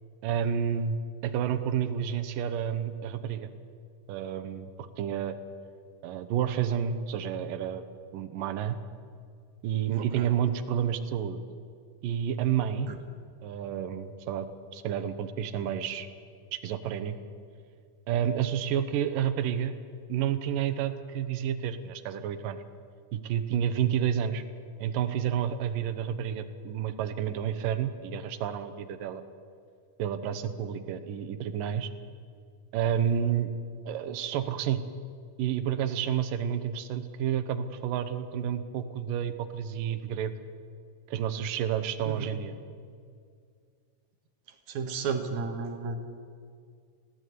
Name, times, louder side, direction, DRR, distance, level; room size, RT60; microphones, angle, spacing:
voice 1, 0.2-1.0 1.2-3.5 4.1-5.4 6.0-7.8 8.1-8.8 9.6-11.4 12.0-12.9 13.4-14.5 14.7-16.1 16.5-17.2 18.1-19.7 20.1-22.6 23.1-24.4 24.8-29.2 30.0-31.9 32.7-33.5 33.9-34.8 35.4-40.3 41.1-42.5, right 9 dB, 85° right, 10 dB, 2.8 m, -30 dB
voice 2, 9.9-10.3 12.9-13.0 42.1-42.3 44.7-46.1, right 5 dB, 65° right, 6 dB, 2.8 m, -33 dB
20.0 x 16.5 x 9.5 m, 2.2 s
omnidirectional pair, 3.8 m